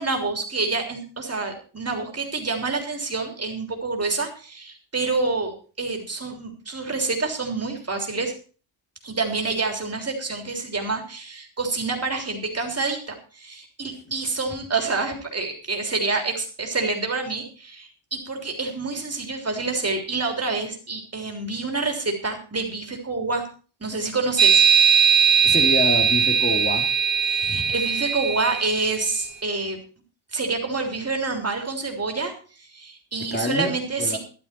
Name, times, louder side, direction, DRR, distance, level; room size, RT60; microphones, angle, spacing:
voice 1, 0.0-8.3 9.0-23.5 23.8-24.6 27.3-29.8 30.3-34.2, right 3 dB, 30° right, 3 dB, 3.4 m, -27 dB
sound 1, 24.4-29.1, right 6 dB, 65° right, 2.5 m, -19 dB
voice 2, 25.4-26.9 27.5-27.7 33.3-34.2, left 2 dB, 20° left, 4 dB, 2.7 m, -27 dB
12.5 x 12.0 x 4.5 m, 0.39 s
wide cardioid pair, 140°, 48 cm